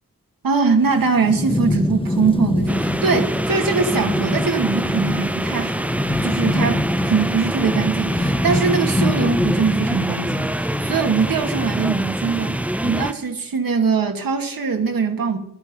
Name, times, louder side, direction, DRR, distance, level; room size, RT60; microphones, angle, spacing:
voice 1, 0.4-5.9 6.2-15.4, right 5 dB, 85° right, 1.9 m, -22 dB
Thunderstorm / Rain, 0.8-13.1, left 1 dB, 15° left, 1.1 m, -25 dB
sound 1, 2.7-13.1, right 1 dB, 5° right, 0.5 m, -25 dB
15.0 x 11.5 x 5.3 m
cardioid pair, 50°, 33 cm